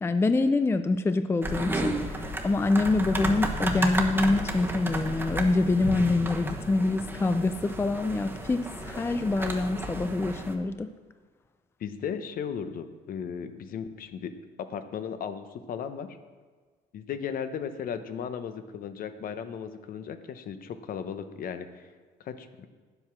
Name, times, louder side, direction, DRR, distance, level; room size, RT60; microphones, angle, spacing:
voice 1, 0.0-10.9, left 3 dB, 15° left, 10 dB, 0.4 m, -26 dB
sound 1, 1.4-10.5, right 1 dB, 10° right, 1.2 m, -32 dB
voice 2, 11.8-14.3 14.7-16.1 16.9-21.9 22.2-22.7, left 7 dB, 55° left, 10 dB, 0.9 m, -36 dB
9.4 x 7.9 x 6.0 m, 1.5 s
cardioid pair, 110°, 17 cm